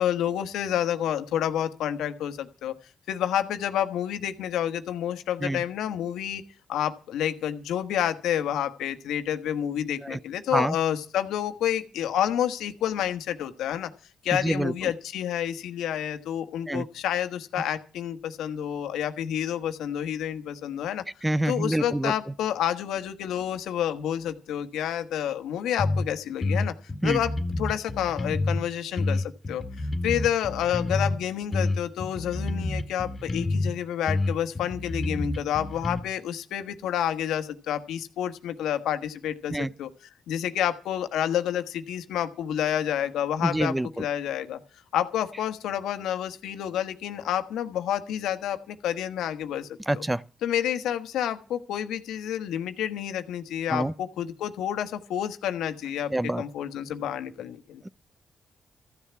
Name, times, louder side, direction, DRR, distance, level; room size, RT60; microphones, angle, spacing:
voice 1, 0.0-2.7 3.1-6.4 6.7-13.9 14.2-21.0 21.4-26.7 27.0-39.9 40.3-44.6 44.9-49.7 49.9-50.0 50.4-56.1 56.4-57.8, left 10 dB, 85° left, 1.5 m, -29 dB
voice 2, 14.3-14.9 16.7-16.9 21.2-22.1 27.0-27.2 39.5-39.7 43.4-44.0 49.9-50.2 53.7-53.9 56.1-56.4, right 1 dB, 10° right, 0.7 m, -26 dB
sound 1, 25.8-26.1 26.4-28.6 29.0-31.2 31.5-33.7 34.1-36.0, left 2 dB, 35° left, 2.1 m, -28 dB
14.5 x 7.1 x 9.5 m
supercardioid pair, 60°, 0 cm